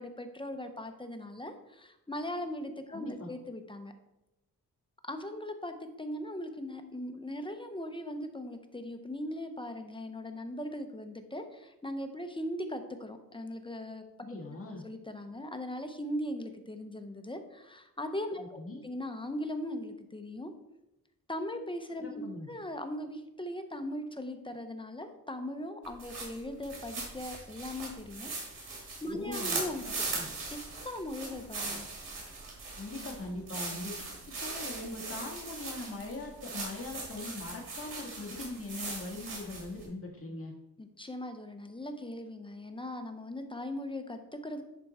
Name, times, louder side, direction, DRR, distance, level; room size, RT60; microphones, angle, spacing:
voice 1, 0.0-3.9 5.0-14.0 14.5-14.6 14.8-20.5 21.3-28.3 29.0-29.8 30.8-31.9 40.8-44.6, left 1 dB, 15° left, 6 dB, 0.7 m, -39 dB
voice 2, 2.9-3.3 14.2-14.8 18.4-18.9 22.0-22.5 29.1-29.6 30.1-30.3 32.7-40.5, left 2 dB, 35° left, -1 dB, 1.8 m, -41 dB
sound 1, 25.8-39.8, right 3 dB, 90° right, 2.9 m, -40 dB
10.5 x 4.4 x 4.2 m, 0.93 s
wide cardioid pair, 125°, 38 cm